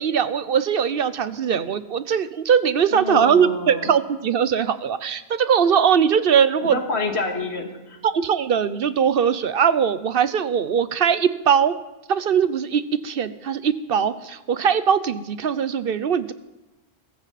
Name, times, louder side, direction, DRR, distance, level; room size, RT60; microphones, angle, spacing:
voice 1, 0.0-6.8 8.0-11.8 12.1-16.3, right 7 dB, 65° right, 14 dB, 0.9 m, -21 dB
voice 2, 2.9-3.9 6.6-8.0, left 3 dB, 80° left, 3 dB, 2.4 m, -28 dB
22.5 x 15.0 x 4.1 m, 1.1 s
omnidirectional pair, 1.1 m